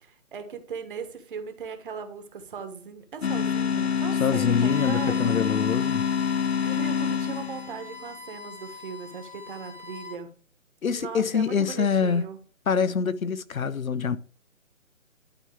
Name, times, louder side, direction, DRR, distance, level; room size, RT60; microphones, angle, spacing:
voice 1, 0.0-5.5 6.6-10.3 10.9-12.4, right 6 dB, 40° right, 1.4 m, -38 dB
sound 1, 3.2-7.9, left 7 dB, 50° left, 0.6 m, -26 dB
voice 2, 4.2-6.0 10.8-12.3 12.7-14.2, left 6 dB, 85° left, 0.9 m, -25 dB
Bowed string instrument, 4.5-10.2, left 5 dB, 70° left, 3.8 m, -41 dB
11.5 x 4.0 x 3.4 m
figure-of-eight pair, 150°, 41 cm